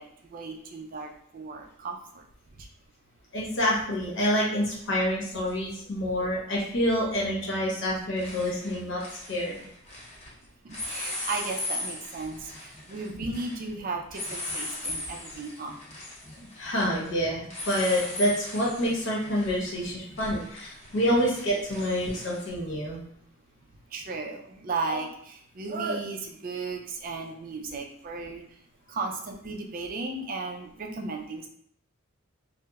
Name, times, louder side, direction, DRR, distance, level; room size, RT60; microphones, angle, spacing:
voice 1, 0.0-2.2 10.6-15.8 23.9-28.4 28.9-31.5, right 3 dB, 45° right, 3 dB, 0.4 m, -35 dB
voice 2, 3.3-9.0 9.3-9.6 16.4-23.0, equal, 60° left, -3 dB, 0.9 m, -27 dB
sound 1, 5.5-5.6 7.3-7.6 7.9-10.3 10.7-22.5, left 2 dB, 35° left, 0.7 m, -39 dB
2.9 x 2.0 x 2.3 m, 0.68 s
head